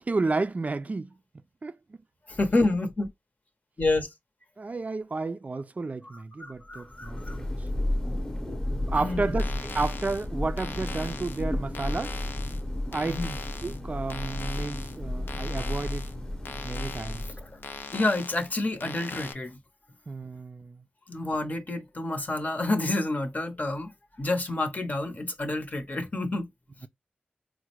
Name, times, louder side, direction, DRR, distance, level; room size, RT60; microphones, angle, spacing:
voice 1, 0.0-1.1 1.6-2.0 4.6-7.7 8.7-12.2 12.9-13.3 13.6-16.1 16.6-17.3 20.1-20.8, right 3 dB, 45° right, 0.3 m, -32 dB
voice 2, 2.3-3.1 3.8-4.1 6.4-7.4 9.0-9.4 13.1-13.3 17.4-17.5 17.9-19.6 21.1-23.9 24.2-26.5, left 2 dB, 50° left, 0.8 m, -28 dB
Thunder, 6.7-17.8, left 1 dB, 15° left, 0.8 m, -32 dB
sound 1, 9.3-19.3, left 4 dB, 70° left, 0.4 m, -41 dB
3.6 x 2.1 x 2.9 m
cardioid pair, 45°, 4 cm